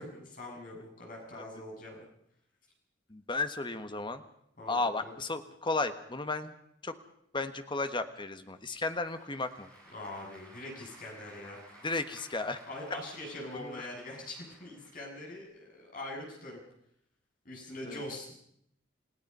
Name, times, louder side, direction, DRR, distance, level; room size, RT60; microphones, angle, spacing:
voice 1, 0.0-2.1 4.6-5.1 9.9-11.6 12.7-16.6 17.4-18.3, left 1 dB, 45° left, -1 dB, 7.3 m, -43 dB
voice 2, 3.1-4.2 4.7-6.5 6.8-6.9 7.3-9.7 11.8-12.6 13.5-13.9 17.9-18.0, left 3 dB, 25° left, 9 dB, 1.3 m, -34 dB
Applause / Crowd, 8.6-15.4, right 1 dB, 5° left, 7.7 m, -56 dB
29.0 x 17.0 x 5.5 m, 0.72 s
head